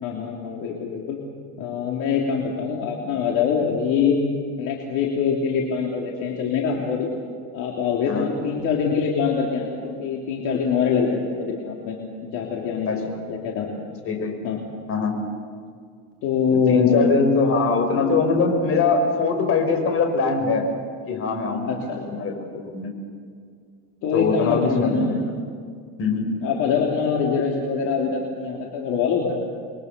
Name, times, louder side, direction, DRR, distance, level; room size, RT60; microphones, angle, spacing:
voice 1, 0.0-1.2 1.6-4.2 4.6-7.1 7.5-13.7 14.4-14.6 16.2-17.0 21.7-22.0 24.0-25.1 26.4-29.3, left 6 dB, 60° left, -1 dB, 3.4 m, -24 dB
voice 2, 16.7-20.6 21.1-22.9 24.1-25.2 26.0-26.3, left 4 dB, 40° left, 4 dB, 5.4 m, -22 dB
29.0 x 22.5 x 6.9 m, 2.1 s
cardioid pair, 145°, 34 cm